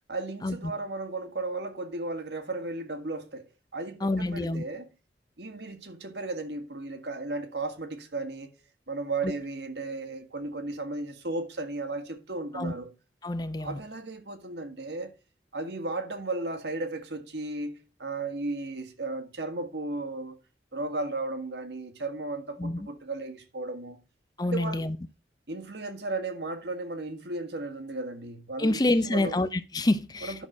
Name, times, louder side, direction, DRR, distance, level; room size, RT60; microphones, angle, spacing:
voice 1, 0.1-4.9 5.4-8.6 8.9-12.9 13.6-15.1 15.5-20.4 20.7-24.0 24.4-24.9 25.5-29.4 30.2-30.5, right 2 dB, 75° right, 1.6 m, -35 dB
voice 2, 4.0-4.6 12.5-12.7 13.2-13.8 22.6-22.8 24.4-25.0 28.6-30.3, left 2 dB, 20° left, 0.5 m, -27 dB
11.0 x 3.8 x 6.0 m
head